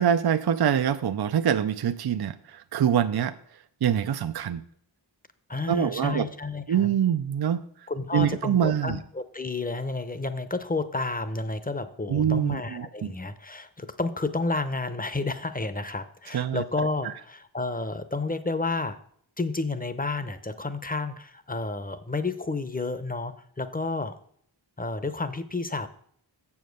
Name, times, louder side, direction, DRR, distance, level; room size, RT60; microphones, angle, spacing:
voice 1, 0.0-3.4 3.8-4.6 5.7-6.3 6.7-7.6 8.1-9.0 12.1-13.1 16.3-16.6, right 9 dB, 60° right, 11 dB, 0.5 m, -24 dB
voice 2, 5.5-6.9 7.9-19.0 19.4-24.2 24.8-25.9, left 3 dB, 20° left, 12 dB, 0.7 m, -31 dB
7.6 x 7.2 x 6.4 m, 0.64 s
wide cardioid pair, 65°, 45 cm